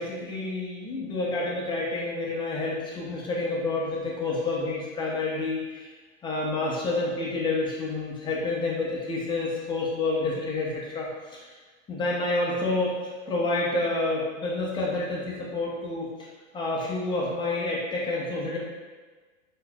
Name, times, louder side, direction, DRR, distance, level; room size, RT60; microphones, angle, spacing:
voice 1, 0.0-5.9 6.2-11.6 11.9-16.3 16.5-18.6, left 2 dB, 15° left, -4 dB, 0.4 m, -29 dB
3.7 x 2.7 x 2.2 m, 1.3 s
hypercardioid pair, 125°, 38 cm